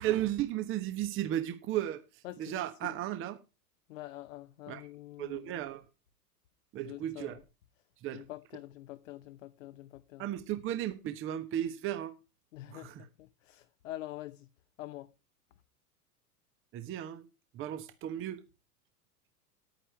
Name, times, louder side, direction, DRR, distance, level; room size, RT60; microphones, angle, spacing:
voice 1, 0.0-3.4 4.7-4.9 5.2-5.8 6.7-7.4 8.0-8.2 10.2-12.1 12.7-13.1 16.7-17.2 17.5-18.4, right 12 dB, 25° right, 1.1 m, -35 dB
voice 2, 2.2-2.6 3.9-5.5 6.8-7.4 8.1-10.2 12.5-14.5 14.8-15.1, left 15 dB, 55° left, 0.8 m, -46 dB
11.0 x 9.0 x 4.5 m
figure-of-eight pair, 95°, 47 cm